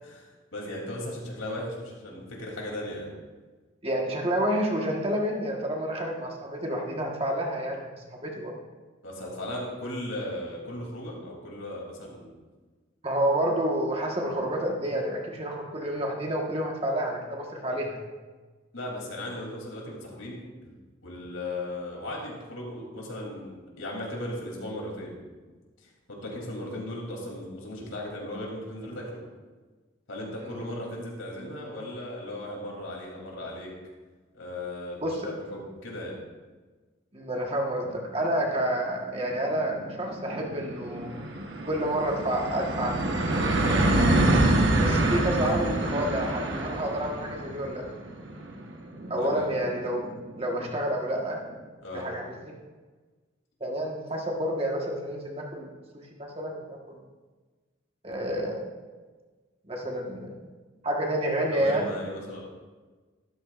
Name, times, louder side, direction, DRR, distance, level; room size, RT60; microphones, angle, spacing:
voice 1, 0.0-3.1 9.0-12.3 18.7-20.7 21.0-25.2 25.8-29.3 30.1-33.7 34.3-36.2 43.6-43.9 49.2-49.5 51.8-52.0 61.5-62.4, left 1 dB, 85° left, -2 dB, 3.1 m, -37 dB
voice 2, 3.8-8.5 13.0-18.0 30.4-30.6 35.0-35.1 37.1-41.1 41.7-43.0 44.3-44.4 44.8-47.8 49.1-50.1 50.4-51.4 51.9-52.5 53.6-55.7 56.3-56.6 56.9-57.0 58.0-58.6 59.7-60.3 60.8-61.9, right 1 dB, 30° right, 0 dB, 1.4 m, -29 dB
sound 1, 38.7-38.8 39.1-50.5, right 1 dB, 65° right, 1.2 m, -27 dB
13.0 x 13.0 x 2.5 m, 1.3 s
head